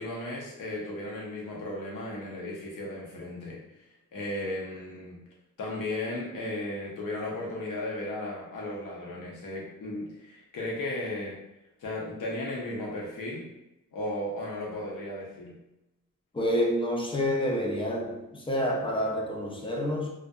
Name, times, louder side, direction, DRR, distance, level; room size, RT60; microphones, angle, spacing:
voice 1, 0.0-3.6 4.1-5.2 5.6-11.4 11.8-13.5 13.9-15.6, left 1 dB, 75° left, -3 dB, 0.8 m, -35 dB
voice 2, 16.3-20.1, equal, 15° left, -1 dB, 0.4 m, -28 dB
2.6 x 2.2 x 2.2 m, 0.94 s
wide cardioid pair, 135°, 32 cm